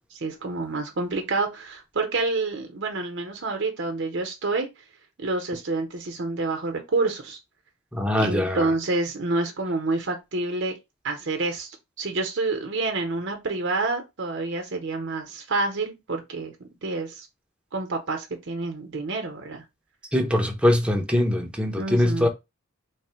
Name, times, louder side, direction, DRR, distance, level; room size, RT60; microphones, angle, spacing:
voice 1, 0.1-4.7 5.2-7.4 8.2-10.7 11.0-17.3 17.7-19.6 21.8-22.3, right 3 dB, 60° right, 0.8 m, -28 dB
voice 2, 7.9-8.7 20.1-22.3, left 1 dB, 5° right, 0.6 m, -22 dB
3.2 x 2.1 x 4.2 m
head